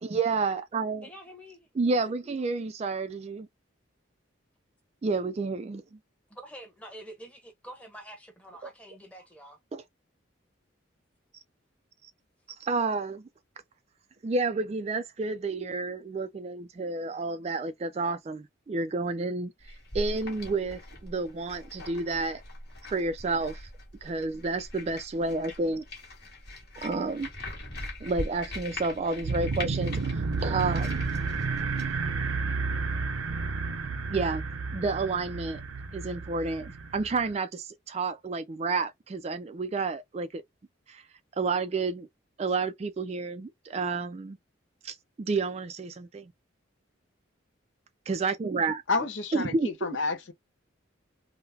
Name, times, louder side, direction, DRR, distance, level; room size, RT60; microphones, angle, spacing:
voice 1, 0.0-1.1 1.8-3.5 5.0-6.0 9.7-9.8 12.0-12.1 12.6-13.3 14.2-19.5 19.9-22.4 22.9-23.7 24.0-25.8 26.8-27.3 28.0-31.0 34.1-34.5 34.7-35.6 35.9-40.4 40.9-41.0 41.4-42.1 42.4-44.4 44.8-46.3 48.1-48.8 49.3-49.7, right 3 dB, 30° right, 0.3 m, -30 dB
voice 2, 1.0-2.0 2.2-2.4 6.3-9.6, right 1 dB, 5° left, 1.0 m, -47 dB
sound 1, 19.6-32.0, left 1 dB, 55° left, 1.5 m, -41 dB
sound 2, 29.2-37.3, right 4 dB, 85° right, 0.6 m, -31 dB
voice 3, 48.9-50.3, left 3 dB, 70° left, 0.6 m, -30 dB
3.7 x 2.1 x 2.7 m
head